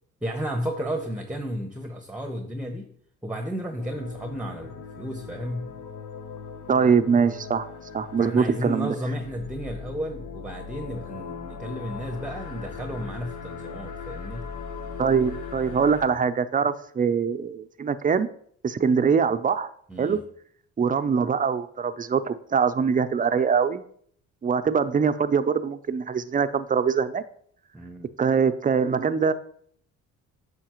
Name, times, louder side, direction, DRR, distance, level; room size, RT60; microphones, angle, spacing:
voice 1, 0.2-2.9 3.2-5.7 8.2-14.5 19.9-20.2 27.7-28.1, equal, 5° right, 5 dB, 0.9 m, -33 dB
sound 1, 3.8-16.1, left 5 dB, 80° left, 0.9 m, -39 dB
voice 2, 6.7-7.7 7.9-8.9 15.0-18.3 18.6-19.7 20.0-20.2 20.8-23.8 24.4-27.2 28.2-29.3, right 6 dB, 25° right, 12 dB, 0.5 m, -23 dB
8.8 x 6.3 x 3.0 m, 0.62 s
cardioid pair, 90°, 30 cm